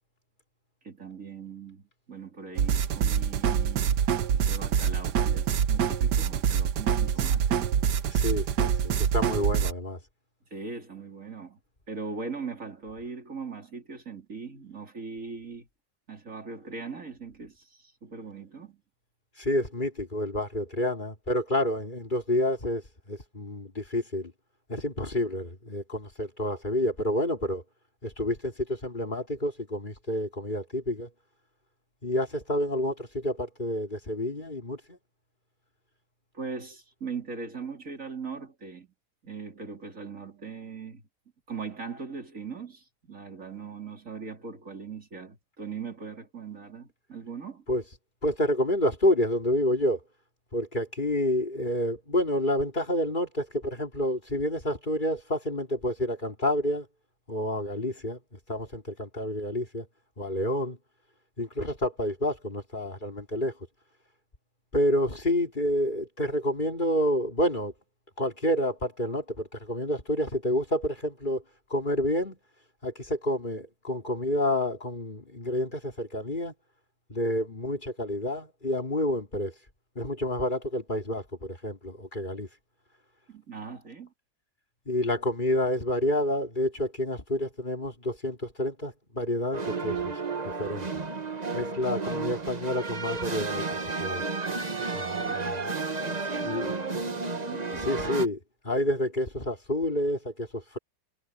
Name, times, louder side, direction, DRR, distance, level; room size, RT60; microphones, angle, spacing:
voice 1, 0.8-4.0 4.3-7.7 10.5-11.6 11.9-15.7 16.1-18.8 36.3-38.9 39.2-41.0 41.5-47.6 83.3-84.1 95.2-95.6 96.0-97.9, right 5 dB, 45° right, 3.8 m, -40 dB
sound 1, 2.6-9.7, right 8 dB, 70° right, 1.5 m, -25 dB
voice 2, 8.1-10.0 19.4-22.8 23.1-24.3 24.7-27.6 28.0-31.1 32.0-35.0 47.7-47.8 48.2-50.0 50.5-56.9 57.3-58.2 58.5-59.9 60.2-60.8 61.4-63.5 64.7-67.7 68.2-71.4 71.7-72.4 72.8-76.5 77.1-79.5 79.9-82.5 84.9-90.0 90.4-90.9 91.5-94.2 94.9-95.7 96.4-96.8 97.8-98.4 98.6-100.8, left 1 dB, 25° left, 2.9 m, -29 dB
sound 2, 89.5-98.3, right 4 dB, 25° right, 1.3 m, -32 dB
omnidirectional pair, 2.0 m